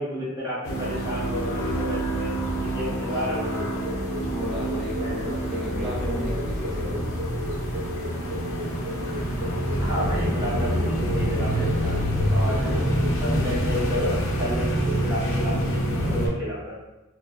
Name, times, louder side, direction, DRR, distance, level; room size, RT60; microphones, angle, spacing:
voice 1, 0.0-3.5 5.0-5.3 9.8-12.0 12.3-12.8 13.2-16.8, left 1 dB, 15° right, -9 dB, 1.2 m, -31 dB
sound 1, 0.6-16.3, right 1 dB, 60° left, 0.6 m, -26 dB
sound 2, 3.3-13.1, left 2 dB, 45° right, 0.5 m, -35 dB
voice 2, 4.3-7.1 12.5-13.0, right 1 dB, ahead, -8 dB, 0.9 m, -35 dB
4.2 x 2.1 x 2.5 m, 1.0 s
head